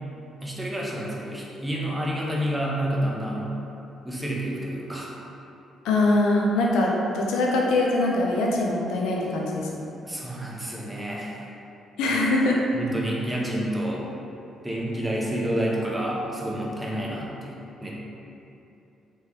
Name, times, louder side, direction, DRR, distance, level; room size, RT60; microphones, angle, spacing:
voice 1, 0.4-3.5 4.0-5.1 10.0-11.5 12.1-12.2 12.7-14.0 14.6-18.0, right 1 dB, 10° right, -4 dB, 0.7 m, -29 dB
voice 2, 5.8-9.8 12.0-12.6, left 2 dB, 90° left, -2 dB, 0.5 m, -23 dB
3.4 x 3.0 x 3.3 m, 2.7 s
cardioid pair, 90°, 0 cm